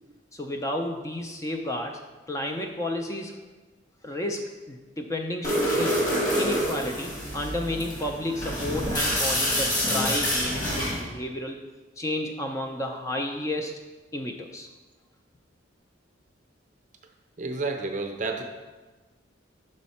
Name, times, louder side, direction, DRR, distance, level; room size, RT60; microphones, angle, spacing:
voice 1, 0.3-2.0 2.3-3.4 4.0-6.0 6.4-11.6 12.0-13.7 14.1-14.7, left 1 dB, 15° left, 3 dB, 0.3 m, -31 dB
sound 1, 5.4-11.0, equal, 40° left, 1.6 m, -27 dB
voice 2, 17.4-18.4, right 3 dB, 40° right, 3 dB, 0.6 m, -30 dB
6.3 x 4.1 x 4.2 m, 1.2 s
head